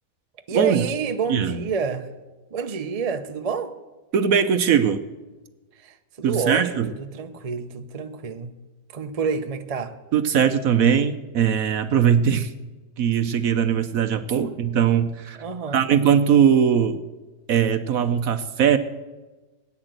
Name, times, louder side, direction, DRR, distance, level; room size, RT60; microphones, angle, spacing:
voice 1, 0.5-2.1 2.5-3.7 5.8-8.5 8.9-9.9 15.4-15.8, right 5 dB, 40° right, 0.5 m, -28 dB
voice 2, 1.3-1.6 4.1-5.0 6.2-6.9 10.1-12.5 13.0-15.4 15.7-17.0 17.5-18.8, right 8 dB, 60° right, 1.0 m, -20 dB
17.5 x 9.9 x 7.9 m
omnidirectional pair, 1.9 m